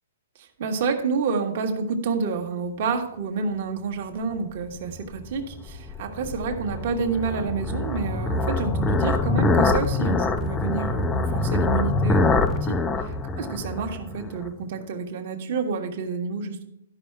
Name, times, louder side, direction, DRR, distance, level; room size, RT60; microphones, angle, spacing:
voice 1, 0.3-16.6, right 5 dB, 40° right, 4 dB, 1.3 m, -29 dB
sound 1, 4.9-14.5, left 3 dB, 10° left, 0.4 m, -24 dB
13.0 x 5.6 x 4.5 m, 0.78 s
hypercardioid pair, 175°, 0 cm